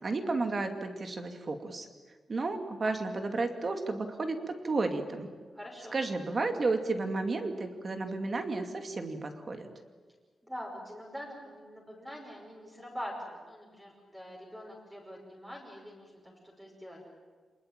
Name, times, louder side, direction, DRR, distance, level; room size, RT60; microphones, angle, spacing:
voice 1, 0.0-1.9 2.3-5.3 5.9-9.7, right 3 dB, 30° right, 6 dB, 2.4 m, -32 dB
voice 2, 5.5-6.0 10.4-17.1, equal, 10° right, -2 dB, 5.6 m, -44 dB
28.0 x 20.5 x 9.1 m, 1.5 s
wide cardioid pair, 170°, 0 cm